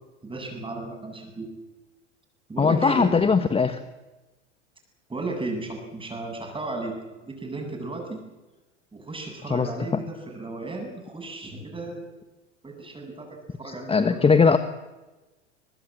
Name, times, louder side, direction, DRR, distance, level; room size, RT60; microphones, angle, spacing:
voice 1, 0.2-1.5 2.5-3.1 5.1-8.2 8.9-12.1 12.6-14.3, right 2 dB, 15° right, 3 dB, 8.0 m, -34 dB
voice 2, 2.6-3.8 9.5-9.7 13.7-14.6, left 5 dB, 15° left, 10 dB, 1.3 m, -20 dB
23.5 x 21.5 x 7.7 m, 1.1 s
hypercardioid pair, 90°, 35 cm